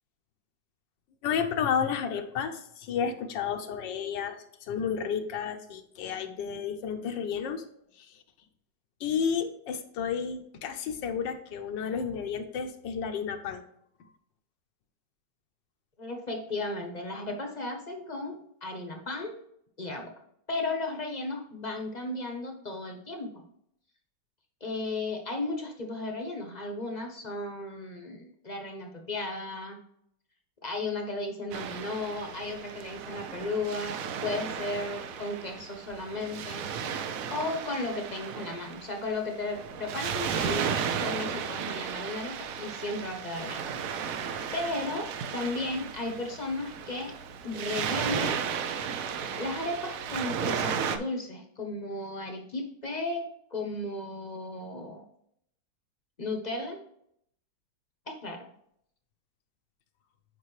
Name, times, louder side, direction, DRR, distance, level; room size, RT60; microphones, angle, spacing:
voice 1, 1.2-7.6 8.0-8.1 9.0-13.6, left 7 dB, 80° left, 7 dB, 1.4 m, -31 dB
voice 2, 16.0-19.4 19.8-20.1 20.5-23.4 24.6-29.8 30.6-36.7 37.3-43.6 44.5-47.1 47.4-48.4 49.3-55.0 56.2-56.8 58.1-58.5, left 2 dB, 35° left, 3 dB, 0.7 m, -35 dB
Waves surf, 31.5-51.0, right 7 dB, 65° right, 0.8 m, -34 dB
8.4 x 5.4 x 3.2 m, 0.72 s
omnidirectional pair, 2.0 m